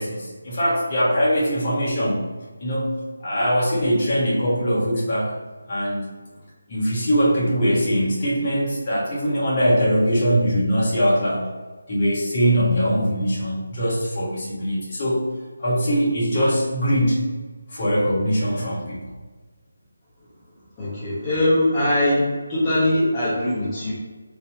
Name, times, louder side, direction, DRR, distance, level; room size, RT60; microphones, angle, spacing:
voice 1, 0.0-2.2 2.6-5.3 5.7-6.0 6.7-11.5 11.9-15.2 15.6-17.2 17.7-19.1, equal, 35° left, -7 dB, 1.4 m, -22 dB
voice 2, 20.8-23.9, left 1 dB, 20° left, -11 dB, 1.2 m, -21 dB
4.2 x 3.5 x 3.4 m, 1.4 s
figure-of-eight pair, 160°, 0 cm